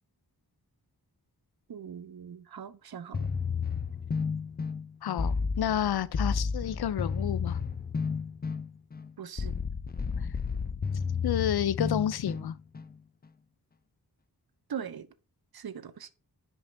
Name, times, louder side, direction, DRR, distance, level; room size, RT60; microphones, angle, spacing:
voice 1, 1.7-3.3 9.2-9.5 14.7-15.1 15.5-16.1, right 8 dB, 70° right, 0.7 m, -41 dB
sound 1, 3.1-12.9, left 5 dB, 25° left, 0.4 m, -32 dB
voice 2, 5.0-7.6 11.2-12.6, left 10 dB, 75° left, 0.5 m, -30 dB
6.2 x 5.1 x 3.3 m
wide cardioid pair, 60°, 39 cm